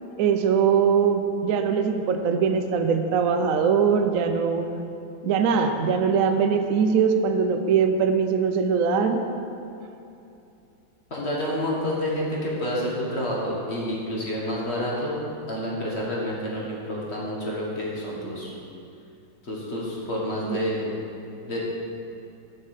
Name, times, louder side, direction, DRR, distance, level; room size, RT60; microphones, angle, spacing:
voice 1, 0.2-4.7 5.2-9.2 20.5-20.6, right 6 dB, 80° right, 6 dB, 0.7 m, -22 dB
voice 2, 11.1-15.1 15.5-18.5 19.4-20.9 21.4-21.6, equal, 35° left, -5 dB, 1.5 m, -29 dB
7.6 x 5.8 x 6.5 m, 2.7 s
omnidirectional pair, 2.1 m